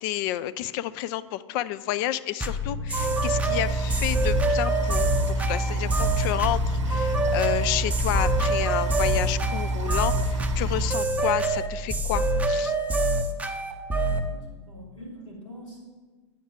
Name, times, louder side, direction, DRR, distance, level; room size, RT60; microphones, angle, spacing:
voice 1, 0.0-12.7, left 13 dB, 45° left, 15 dB, 0.4 m, -30 dB
sound 1, 2.4-14.3, right 2 dB, 10° right, 0.7 m, -26 dB
sound 2, 3.0-10.9, right 1 dB, 70° right, 0.7 m, -28 dB
sound 3, 5.4-9.7, left 2 dB, 70° left, 1.6 m, -38 dB
voice 2, 14.0-15.8, equal, 85° left, -5 dB, 2.9 m, -44 dB
9.4 x 5.9 x 4.9 m, 1.3 s
figure-of-eight pair, 85°, 16 cm